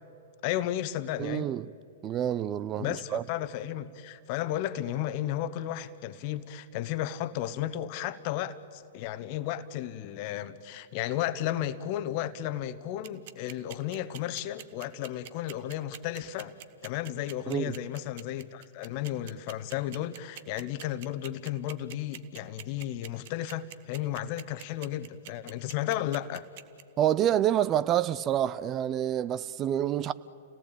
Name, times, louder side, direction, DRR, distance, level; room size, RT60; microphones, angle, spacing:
voice 1, 0.4-1.5 2.8-16.6 16.8-26.5, left 12 dB, 45° left, 1.2 m, -33 dB
voice 2, 1.2-1.7 2.0-3.2 17.5-17.8 27.0-30.1, right 11 dB, 30° right, 0.6 m, -27 dB
sound 1, 13.0-26.8, right 12 dB, 55° right, 1.3 m, -44 dB
30.0 x 18.5 x 9.1 m
figure-of-eight pair, 110°, 0 cm